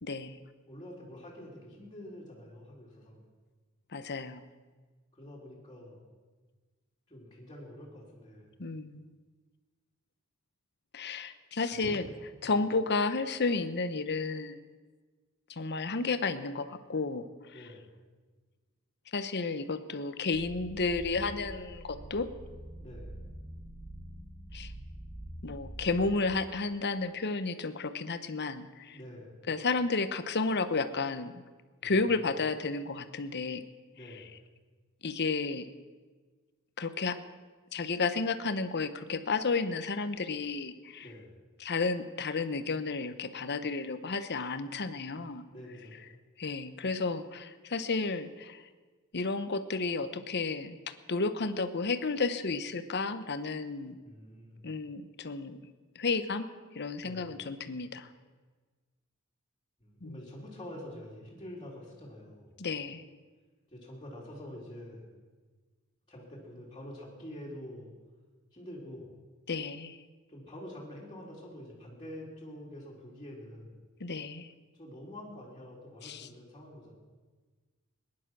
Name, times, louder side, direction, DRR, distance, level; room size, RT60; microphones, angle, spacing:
voice 1, 0.0-0.4 3.9-4.5 8.6-9.1 10.9-12.1 12.4-14.7 15.5-17.7 19.1-22.3 24.5-24.7 25.4-29.0 29.5-31.4 31.8-33.6 34.1-34.2 35.0-35.7 36.8-37.2 37.7-41.1 41.6-45.5 46.4-48.7 49.1-54.0 54.6-55.6 55.9-58.1 60.0-60.2 62.6-63.0 69.5-70.0 74.0-74.5 76.0-76.3, left 4 dB, 50° left, 11 dB, 0.9 m, -32 dB
voice 2, 0.7-3.2 5.1-6.1 7.1-8.5 11.7-12.1 12.4-12.6 17.5-18.0 22.8-23.2 28.9-29.4 31.8-32.2 33.9-34.3 41.0-41.4 45.5-46.0 54.0-54.7 57.0-57.3 59.8-62.6 63.7-65.1 66.1-67.9 68.5-69.1 70.3-73.7 74.7-77.0, left 1 dB, 20° left, -6 dB, 3.4 m, -47 dB
sound 1, 20.3-26.2, right 1 dB, 10° right, 1.5 m, -45 dB
20.5 x 10.5 x 6.2 m, 1.4 s
head